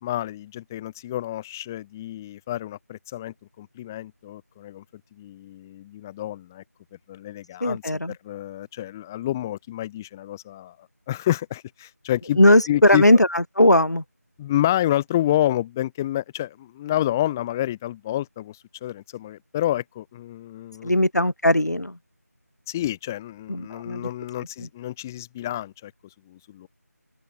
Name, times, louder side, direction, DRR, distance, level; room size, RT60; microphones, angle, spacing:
voice 1, 0.0-4.8 5.1-6.6 7.1-7.8 8.1-10.8 11.1-12.4 12.7-13.0 14.4-20.9 22.7-25.9 26.3-26.7, left 13 dB, 10° left, 7.0 m, -29 dB
voice 2, 7.6-8.1 12.4-14.0 20.8-22.0 23.5-24.1 24.6-24.7, left 1 dB, 80° left, 4.1 m, -18 dB
open air
figure-of-eight pair, 170°, 9 cm